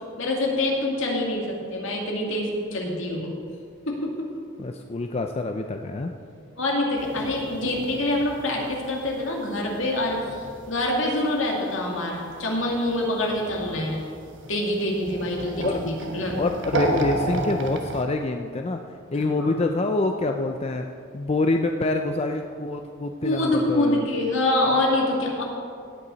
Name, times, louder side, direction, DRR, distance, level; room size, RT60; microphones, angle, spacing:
voice 1, 0.2-3.4 3.9-4.3 6.6-10.2 10.7-14.0 14.5-16.4 19.2-19.5 23.2-25.4, left 1 dB, 70° left, -1 dB, 2.3 m, -25 dB
voice 2, 4.6-6.1 15.6-15.8 16.3-18.8 19.1-20.8 21.1-24.0, left 2 dB, 30° left, 5 dB, 0.5 m, -26 dB
sound 1, 7.0-11.5 11.7-18.0, right 1 dB, 65° right, 1.3 m, -33 dB
17.0 x 8.6 x 4.0 m, 2.3 s
head